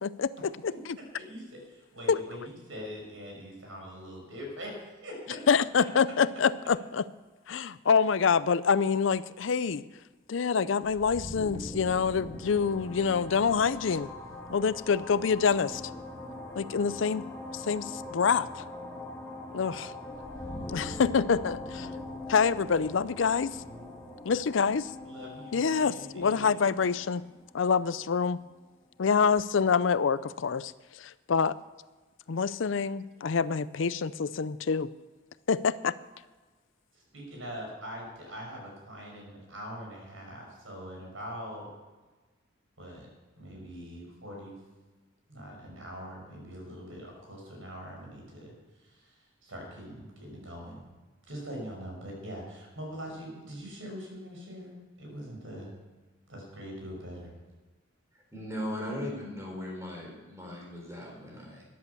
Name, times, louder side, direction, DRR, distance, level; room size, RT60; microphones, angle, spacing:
voice 1, 0.0-1.0 2.1-2.2 5.5-7.0 7.5-9.8 10.3-14.1 14.5-15.8 16.6-17.2 17.5-18.7 19.5-19.9 20.7-21.9 22.3-23.6 24.2-24.9 25.5-27.2 27.5-28.4 29.0-31.5 32.3-34.9 35.5-35.9, left 6 dB, 75° left, 17 dB, 0.5 m, -26 dB
voice 2, 1.1-5.4 23.6-23.9 25.1-26.7 36.9-41.7 42.8-43.1 43.4-44.6 45.3-48.5 48.8-49.2 49.4-50.8 51.3-55.7 56.3-57.3, equal, 85° right, 0 dB, 6.0 m, -43 dB
sound 1, 10.9-28.5, left 1 dB, 10° left, 1.5 m, -42 dB
voice 3, 58.3-61.6, left 1 dB, 15° right, -1 dB, 3.8 m, -38 dB
13.5 x 10.5 x 7.0 m, 1.3 s
head